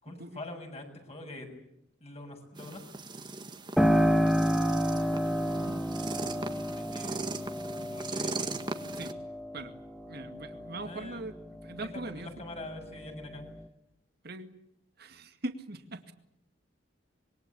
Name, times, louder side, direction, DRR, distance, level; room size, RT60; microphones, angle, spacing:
voice 1, 0.0-1.7 2.0-2.8 6.7-7.2 7.7-8.6 10.8-11.3 11.7-13.5, left 2 dB, 35° left, 3 dB, 7.0 m, -44 dB
sound 1, 2.6-9.1, right 3 dB, 25° right, 1.9 m, -39 dB
Piano, 3.8-12.2 12.6-13.6, equal, ahead, 1.5 m, -30 dB
voice 2, 10.1-11.3 11.6-12.3 14.2-14.5 15.0-16.1, right 2 dB, 55° right, 7 dB, 2.2 m, -40 dB
26.0 x 22.5 x 8.6 m, 0.80 s
head